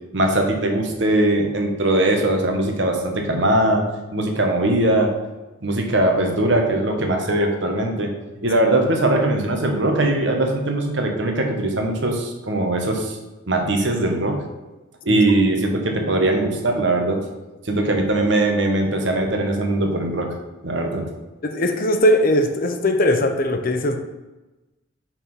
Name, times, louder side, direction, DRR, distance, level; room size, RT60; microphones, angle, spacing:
voice 1, 0.1-3.8 4.1-5.1 5.6-8.1 8.4-13.2 13.5-14.4 15.0-17.2 17.6-20.3 20.6-21.1, right 1 dB, 60° right, 3 dB, 1.2 m, -20 dB
voice 2, 21.4-24.0, left 1 dB, 45° left, 6 dB, 0.7 m, -19 dB
5.7 x 4.9 x 5.5 m, 1.1 s
head